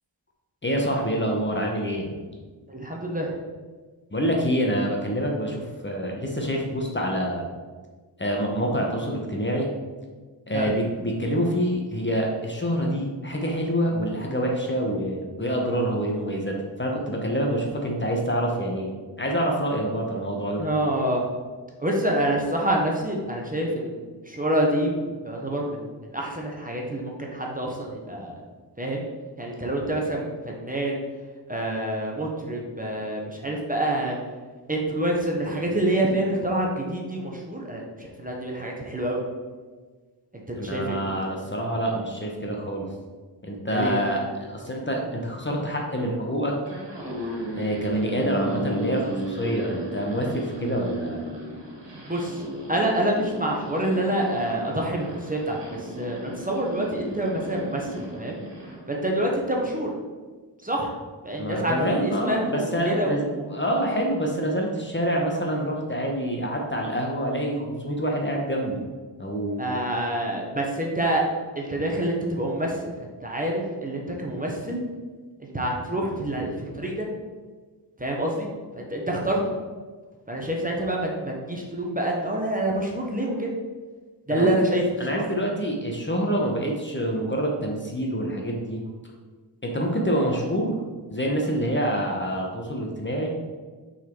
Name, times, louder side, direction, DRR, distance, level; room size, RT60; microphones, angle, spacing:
voice 1, 0.6-2.1 4.1-7.5 8.2-9.7 10.5-18.9 19.2-20.6 40.6-42.9 43.4-46.6 47.6-51.2 61.4-68.8 69.2-69.8 84.3-84.5 85.0-88.8 89.6-90.8 91.1-93.3, equal, 25° left, 0 dB, 1.1 m, -26 dB
voice 2, 2.7-3.3 10.5-10.7 20.6-21.3 21.8-28.3 28.8-29.0 29.4-31.0 31.5-34.2 34.7-39.2 40.5-41.0 43.7-44.1 51.9-52.4 52.7-58.4 58.9-59.9 60.6-60.9 61.2-63.5 69.6-71.2 71.5-74.8 75.4-77.1 78.0-78.5 78.7-79.4 80.3-83.5 84.3-84.8 85.1-85.3, right 1 dB, 20° right, -1 dB, 1.2 m, -27 dB
sound 1, 46.6-58.8, equal, 70° right, 1.9 m, -35 dB
5.4 x 4.3 x 4.6 m, 1.4 s
cardioid pair, 55°, 44 cm